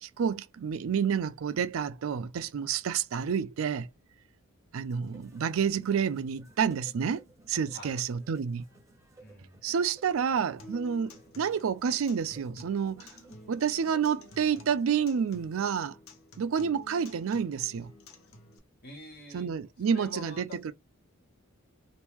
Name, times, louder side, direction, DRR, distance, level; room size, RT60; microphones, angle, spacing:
voice 1, 0.0-3.9 4.7-8.6 9.6-13.1 13.5-16.0 16.4-17.9 19.3-20.7, right 7 dB, 70° right, 0.4 m, -29 dB
sound 1, 4.8-15.6, right 2 dB, 15° right, 1.1 m, -58 dB
voice 2, 7.7-8.0 9.2-9.6 18.8-19.6 19.8-20.7, left 2 dB, 50° left, 1.4 m, -46 dB
Acoustic guitar, 10.6-18.6, left 1 dB, 85° left, 0.9 m, -52 dB
3.1 x 2.5 x 3.4 m
head